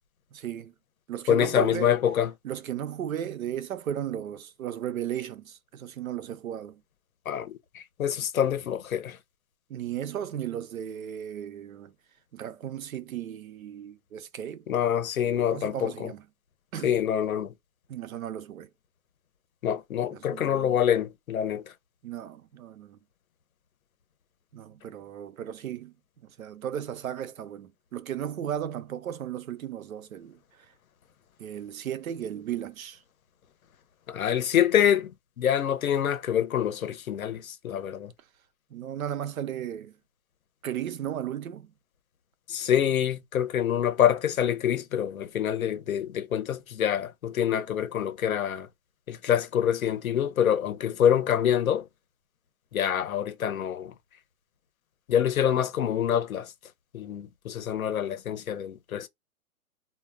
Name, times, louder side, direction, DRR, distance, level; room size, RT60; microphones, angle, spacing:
voice 1, 0.3-0.7 1.1-1.9 2.4-6.8 9.7-11.9 12.3-14.6 15.2-16.2 16.7-17.0 17.9-18.7 20.1-20.8 22.0-23.0 24.5-25.9 26.2-30.7 31.4-33.0 38.7-39.9 40.6-41.7, right 10 dB, 65° right, 0.5 m, -35 dB
voice 2, 1.3-2.3 7.3-9.2 14.7-16.1 16.8-17.5 19.6-21.7 34.1-35.1 35.4-38.1 42.5-48.7 49.1-51.8 52.7-53.9 55.1-56.5 56.9-59.1, left 9 dB, 70° left, 0.7 m, -26 dB
2.1 x 2.1 x 3.3 m
hypercardioid pair, 180°, 45 cm